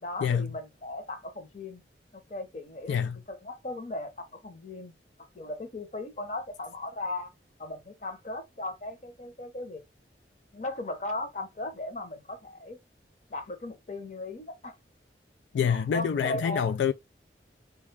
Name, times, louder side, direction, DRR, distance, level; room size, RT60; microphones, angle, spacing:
voice 1, 0.0-1.8 2.3-4.9 5.3-7.3 7.6-9.8 10.5-12.8 13.3-14.7 15.6-16.8, left 2 dB, 40° left, 0.8 m, -37 dB
voice 2, 15.5-16.9, left 7 dB, 85° left, 0.3 m, -26 dB
3.7 x 2.3 x 3.3 m
head